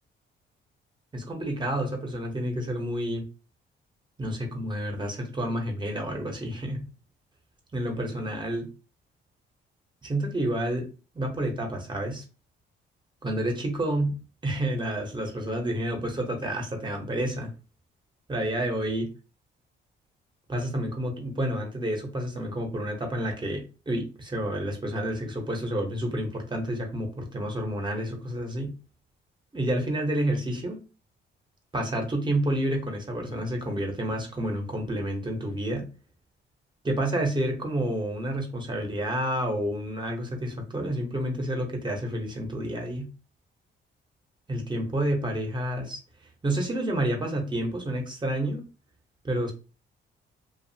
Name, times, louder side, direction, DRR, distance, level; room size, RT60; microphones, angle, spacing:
voice 1, 1.1-3.2 4.2-6.9 7.7-8.6 10.0-10.9 11.1-12.2 13.2-17.5 18.3-19.1 20.5-28.7 29.5-30.8 31.7-35.9 36.8-43.1 44.5-46.0 46.4-48.6 49.2-49.5, right 1 dB, 25° right, 2 dB, 0.8 m, -29 dB
2.6 x 2.4 x 2.7 m, 0.33 s
cardioid pair, 90°, 20 cm